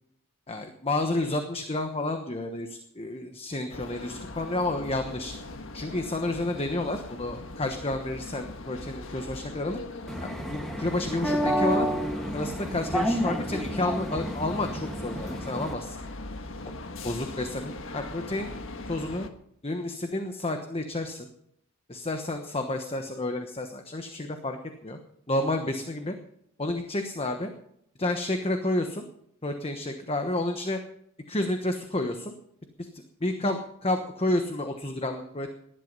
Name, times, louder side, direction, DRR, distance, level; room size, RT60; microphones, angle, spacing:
voice 1, 0.5-5.3 5.7-9.8 10.2-12.0 12.3-16.0 17.0-18.5 18.9-19.3 19.6-21.3 21.9-24.6 24.8-25.0 25.3-26.1 26.6-27.5 28.0-29.0 29.4-30.8 31.3-32.3 32.8-32.9 33.2-35.5, left 2 dB, 25° left, 6 dB, 1.1 m, -30 dB
sound 1, 3.7-19.3, left 2 dB, 60° left, 1.5 m, -40 dB
sound 2, 10.1-15.7, equal, ahead, 1.6 m, -30 dB
19.0 x 11.0 x 5.4 m, 0.73 s
head